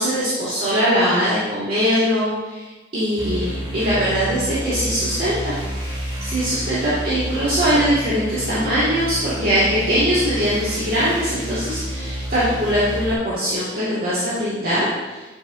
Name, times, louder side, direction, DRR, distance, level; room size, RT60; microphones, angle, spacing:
voice 1, 0.0-2.7 2.9-5.6 6.2-15.2, equal, 50° right, -11 dB, 2.0 m, -21 dB
sound 1, 3.2-13.1, equal, 25° right, 2.2 m, -29 dB
8.9 x 7.9 x 2.7 m, 1.2 s
head